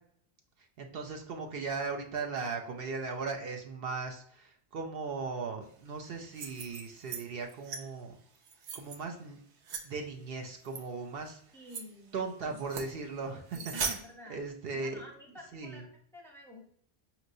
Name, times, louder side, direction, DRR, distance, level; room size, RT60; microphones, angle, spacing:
voice 1, 0.8-8.2 8.7-9.4 9.8-11.4 12.1-14.0 14.3-15.0 15.5-15.9, right 4 dB, 65° right, 3 dB, 0.8 m, -38 dB
sound 1, 6.2-7.2 7.5-7.8 8.4-9.0 9.6-9.8 10.6-10.8 11.3-11.4 11.7-11.8 12.5-12.9 13.5-14.0, right 5 dB, 90° right, 0.9 m, -38 dB
voice 2, 11.5-12.6 13.5-13.7 14.0-14.4 14.7-16.6, left 1 dB, 5° left, 1 dB, 0.6 m, -51 dB
5.3 x 3.0 x 2.5 m, 0.64 s
omnidirectional pair, 1.1 m